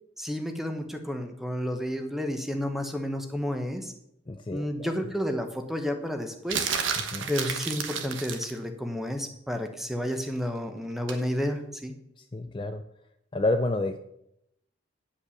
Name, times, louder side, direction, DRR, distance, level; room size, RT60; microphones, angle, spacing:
voice 1, 0.2-3.9 4.5-6.7 7.3-11.9, equal, ahead, 5 dB, 0.9 m, -31 dB
voice 2, 4.3-4.9 7.1-7.3 12.2-12.8 13.3-14.0, left 2 dB, 25° left, 7 dB, 0.4 m, -29 dB
sound 1, 6.5-8.6 11.1-11.3, right 6 dB, 80° right, 1.2 m, -31 dB
10.0 x 5.4 x 7.1 m, 0.80 s
head